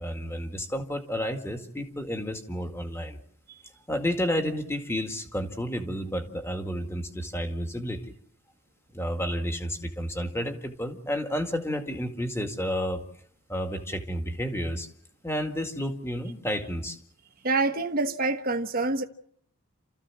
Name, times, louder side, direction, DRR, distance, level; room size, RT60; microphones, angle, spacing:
voice 1, 0.0-3.2 3.9-8.0 8.9-13.0 13.5-14.9 15.2-17.0, equal, 10° left, 2.0 m, -31 dB
voice 2, 17.4-19.0, right 3 dB, 40° right, 1.2 m, -26 dB
29.0 x 14.5 x 7.4 m
head